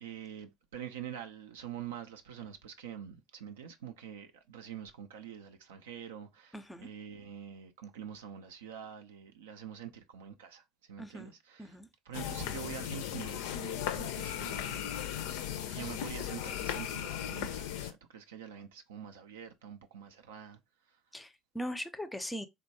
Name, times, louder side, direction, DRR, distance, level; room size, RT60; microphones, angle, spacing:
voice 1, 0.0-11.8 12.1-14.9 15.7-20.6, right 9 dB, 75° right, 0.4 m, -46 dB
voice 2, 6.5-6.9 11.0-11.3 11.6-11.9 21.1-22.5, equal, 10° left, 0.5 m, -40 dB
sound 1, 12.1-17.9, left 10 dB, 70° left, 0.4 m, -37 dB
3.2 x 2.1 x 2.7 m
figure-of-eight pair, 60°, 0 cm